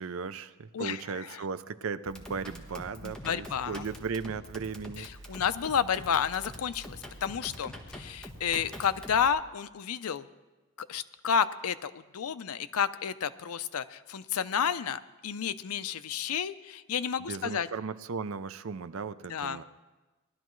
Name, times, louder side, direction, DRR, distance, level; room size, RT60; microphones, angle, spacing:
voice 1, 0.0-5.1 17.3-19.6, right 5 dB, 70° right, 13 dB, 0.5 m, -36 dB
sound 1, 2.1-9.3, equal, 5° left, 1.2 m, -45 dB
voice 2, 3.0-3.8 5.0-10.3 10.8-17.7 19.3-19.6, left 7 dB, 90° left, 13 dB, 0.5 m, -31 dB
19.5 x 12.0 x 3.1 m, 1.2 s
head